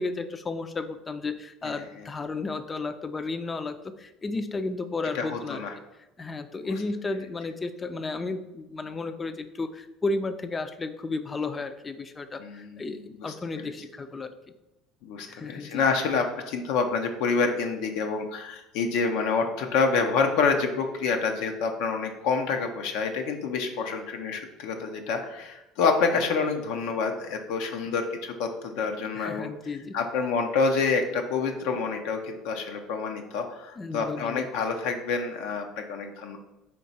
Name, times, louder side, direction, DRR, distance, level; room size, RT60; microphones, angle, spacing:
voice 1, 0.0-5.7 6.2-14.3 15.3-15.8 29.2-30.0 33.8-34.5, left 3 dB, 25° left, 10 dB, 0.4 m, -33 dB
voice 2, 1.6-2.1 5.1-5.7 6.6-6.7 12.4-13.7 15.0-29.5 29.9-36.4, left 4 dB, 75° left, 4 dB, 0.5 m, -28 dB
4.5 x 2.9 x 4.0 m, 0.98 s
supercardioid pair, 90°, 0 cm